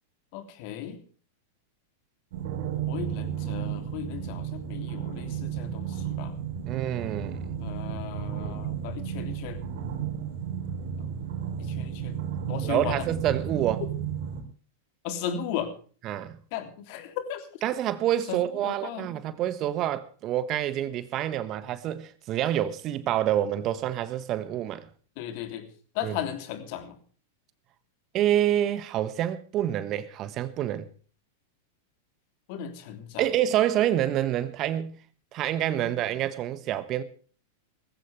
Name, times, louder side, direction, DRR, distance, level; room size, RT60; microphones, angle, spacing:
voice 1, 0.3-1.0 2.9-6.3 7.6-9.6 11.0-11.1 11.6-12.1 12.5-13.0 15.0-15.7 16.5-17.5 18.3-19.1 25.2-25.7 25.9-27.0 32.5-33.3 35.8-35.9, left 9 dB, 50° left, 3.2 m, -36 dB
sound 1, 2.3-14.4, right 8 dB, 60° right, 4.0 m, -33 dB
voice 2, 6.7-7.5 8.3-8.5 12.6-13.8 16.0-16.4 17.6-24.9 26.0-26.1 28.1-30.9 33.2-34.9 35.3-37.0, right 12 dB, 40° right, 1.4 m, -27 dB
19.5 x 15.5 x 3.4 m
figure-of-eight pair, 95°, 0 cm